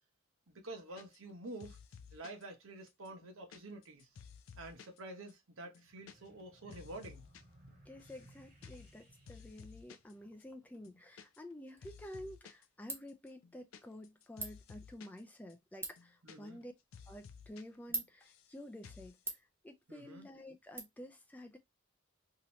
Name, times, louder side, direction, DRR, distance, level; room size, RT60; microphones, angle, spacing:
voice 1, 0.5-1.8 2.1-4.1 4.6-7.2 16.2-16.6 19.9-20.3, right 2 dB, 75° right, 0.9 m, -49 dB
sound 1, 1.0-1.3 1.6-2.4 2.9-5.0 5.3-5.4 5.6-6.1 6.4-7.4 7.7-8.3 8.6-8.9 9.3-10.1 10.4-10.5 10.7-11.6 11.8-12.6 13.1-15.2 15.5-15.6 15.8-16.7 16.9-17.6 17.9-18.5 18.8-19.2, left 6 dB, 80° left, 0.4 m, -55 dB
sound 2, 5.8-10.8, right 1 dB, 45° right, 1.0 m, -62 dB
voice 2, 7.9-16.7 17.1-21.6, left 1 dB, 10° left, 0.4 m, -51 dB
Ratchet pawl, 11.7-20.8, right 3 dB, 10° right, 0.8 m, -49 dB
2.8 x 2.6 x 3.0 m
head